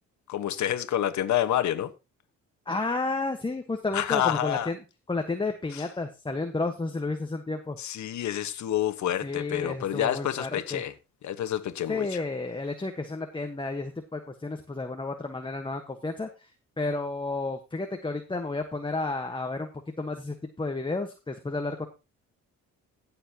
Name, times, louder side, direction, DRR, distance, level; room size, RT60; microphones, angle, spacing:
voice 1, 0.3-1.9 3.9-4.7 5.7-5.9 7.8-10.9 11.2-12.2, left 11 dB, 70° left, 1.3 m, -28 dB
voice 2, 2.7-4.8 5.1-7.8 9.2-10.8 11.9-16.5 16.8-19.7 20.0-21.9, left 3 dB, 15° left, 1.3 m, -31 dB
16.5 x 7.1 x 2.9 m
cardioid pair, 90°, 30 cm